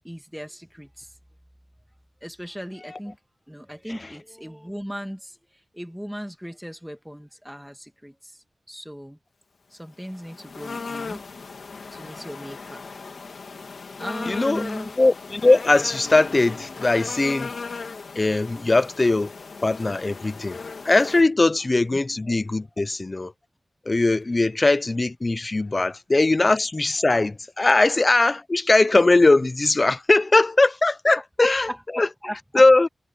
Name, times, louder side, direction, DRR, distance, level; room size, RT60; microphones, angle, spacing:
voice 1, 0.0-1.1 2.2-3.2 3.5-5.4 5.7-9.2 9.7-11.2 11.9-12.9 14.0-14.9 21.9-22.0 31.4-32.4, equal, ahead, 1.6 m, -37 dB
sound 1, 10.0-21.2, left 4 dB, 70° left, 2.4 m, -37 dB
voice 2, 14.3-14.7 15.0-17.5 18.2-19.3 19.6-20.6 20.8-23.3 23.9-31.7 31.9-32.1 32.5-32.9, left 2 dB, 30° left, 0.6 m, -20 dB
wide cardioid pair, 115°, 0 cm